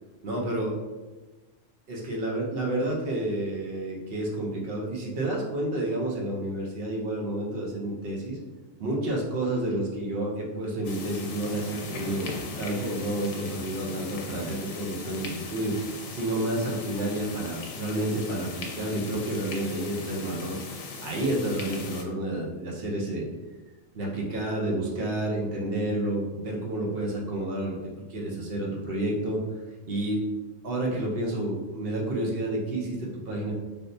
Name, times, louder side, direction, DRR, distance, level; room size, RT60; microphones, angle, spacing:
voice 1, 0.2-0.8 1.9-8.4 8.8-15.8 16.1-20.6 21.0-23.3 23.9-27.8 28.1-29.4 29.9-30.2 30.6-33.5, right 1 dB, 55° right, -2 dB, 0.9 m, -30 dB
sound 1, 10.8-22.0, left 3 dB, 90° left, 1.0 m, -39 dB
3.4 x 2.7 x 2.6 m, 1.2 s
omnidirectional pair, 1.3 m